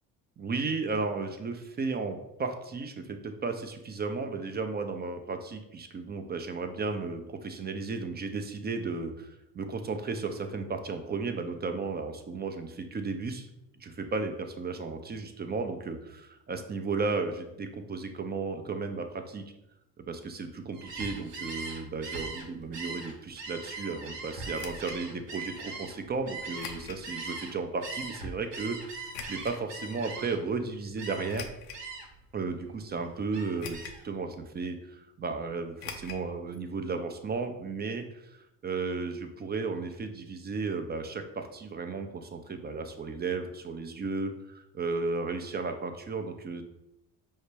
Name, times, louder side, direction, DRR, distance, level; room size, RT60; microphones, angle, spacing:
voice 1, 0.4-13.5 13.8-19.4 20.0-31.5 32.3-46.6, right 4 dB, 20° right, 6 dB, 0.4 m, -34 dB
Gull seagull, 20.7-27.5 27.8-30.5 31.0-31.4 31.7-32.2 32.6-34.1, right 3 dB, 90° right, 0.7 m, -40 dB
sound 1, 24.5-25.0 26.6-27.1 27.6-27.7 29.1-29.6 31.3-31.9 32.5-32.6 33.6-34.1 34.3-34.4 35.8-36.2 36.5-36.6 36.9-37.0, left 5 dB, 85° left, 0.6 m, -42 dB
5.5 x 2.1 x 3.2 m, 0.86 s
hypercardioid pair, 55°, 47 cm